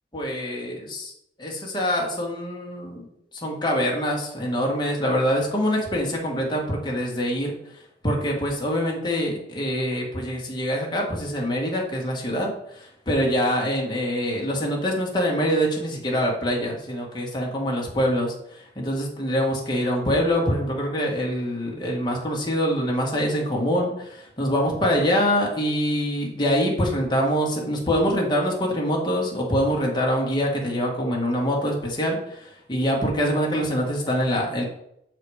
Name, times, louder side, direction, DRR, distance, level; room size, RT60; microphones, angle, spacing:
voice 1, 0.1-1.1 1.4-3.1 3.4-7.5 8.0-34.6, equal, 25° left, -2 dB, 1.7 m, -24 dB
6.8 x 4.2 x 4.8 m, 0.75 s
head